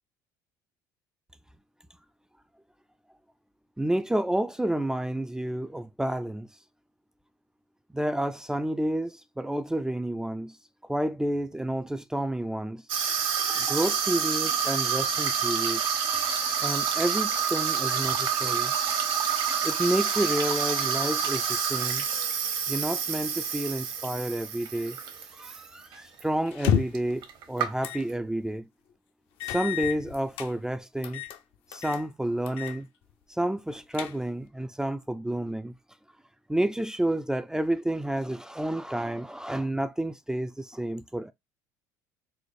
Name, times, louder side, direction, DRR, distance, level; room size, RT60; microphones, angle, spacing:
voice 1, 3.8-6.5 7.9-10.6 10.9-12.8 13.6-15.8 16.6-18.8 19.6-22.1 22.7-25.0 25.3-28.7 29.4-31.2 31.7-32.9 33.3-35.7 36.5-41.3, right 1 dB, 5° right, 0.3 m, -30 dB
Water tap faucet / Sink (filling or washing), 12.9-25.6 25.9-26.2 26.9-27.0 27.2-28.1, right 7 dB, 55° right, 0.9 m, -28 dB
sound 1, 26.5-27.1 27.8-28.1 28.5-28.6 29.4-30.5 31.0-31.4 31.7-32.0 32.5-32.8 33.1-33.2 33.7-34.5, left 9 dB, 65° left, 0.6 m, -30 dB
4.0 x 2.0 x 3.3 m
hypercardioid pair, 80°, 10 cm